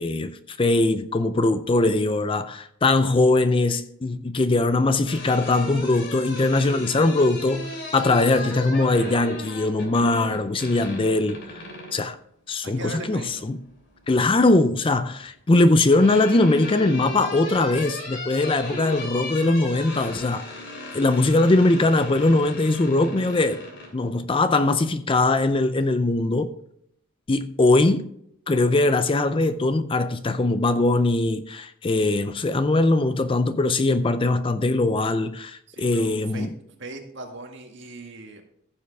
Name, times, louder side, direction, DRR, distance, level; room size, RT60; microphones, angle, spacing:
voice 1, 0.0-11.6 11.9-12.2 12.5-13.6 14.1-20.5 20.9-23.6 23.9-26.5 27.3-28.0 28.5-36.5, left 2 dB, 25° left, 0.4 m, -21 dB
sound 1, 4.8-12.0 13.5-14.2 15.4-23.9, left 2 dB, 55° left, 2.9 m, -36 dB
voice 2, 12.6-13.5 35.7-36.5 36.8-38.4, right 2 dB, 55° right, 1.8 m, -39 dB
15.0 x 7.1 x 3.4 m
head